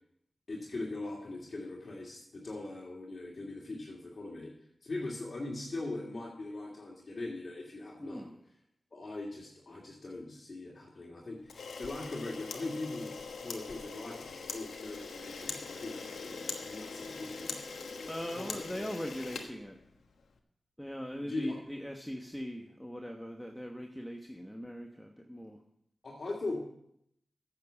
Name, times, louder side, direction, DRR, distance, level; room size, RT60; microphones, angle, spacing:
voice 1, 0.5-4.5 4.8-8.3 8.9-13.1 13.4-17.6 18.3-18.6 21.2-21.6 26.0-26.6, left 2 dB, 55° left, -3 dB, 2.2 m, -40 dB
voice 2, 8.0-8.4 18.0-19.8 20.8-25.6, equal, 5° left, 2 dB, 1.2 m, -40 dB
Camera, 11.5-20.2, left 4 dB, 85° left, 1.2 m, -42 dB
9.1 x 7.3 x 7.2 m, 0.73 s
cardioid pair, 45°, 0 cm